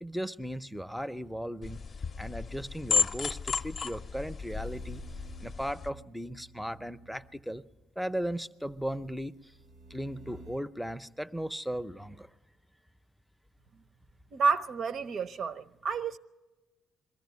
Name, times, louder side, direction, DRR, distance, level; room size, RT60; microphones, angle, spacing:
voice 1, 0.0-1.8 2.2-5.0 5.4-7.6 8.0-9.5 9.9-12.3, equal, ahead, 0.6 m, -37 dB
sound 1, 1.6-5.9, left 5 dB, 45° left, 0.6 m, -33 dB
sound 2, 4.5-7.5 8.8-10.6, right 2 dB, 85° right, 1.0 m, -51 dB
voice 2, 14.3-16.2, right 5 dB, 60° right, 0.7 m, -30 dB
22.0 x 14.0 x 9.3 m
cardioid pair, 90°, 0 cm